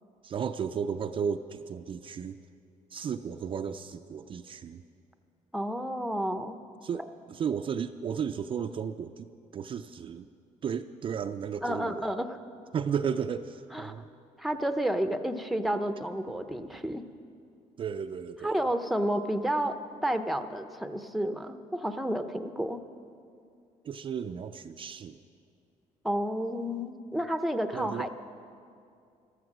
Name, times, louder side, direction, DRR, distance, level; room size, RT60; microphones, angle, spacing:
voice 1, 0.2-2.4 2.9-4.8 6.8-10.3 10.6-12.1 12.7-14.1 17.8-18.6 23.8-25.2 27.7-28.1, right 7 dB, 40° right, 8 dB, 0.4 m, -34 dB
voice 2, 5.5-6.6 11.6-12.4 13.7-14.0 14.4-17.0 18.4-19.8 20.0-22.8 26.0-28.1, right 1 dB, ahead, 8 dB, 0.7 m, -30 dB
14.0 x 13.0 x 6.1 m, 2.4 s
cardioid pair, 105°, 13 cm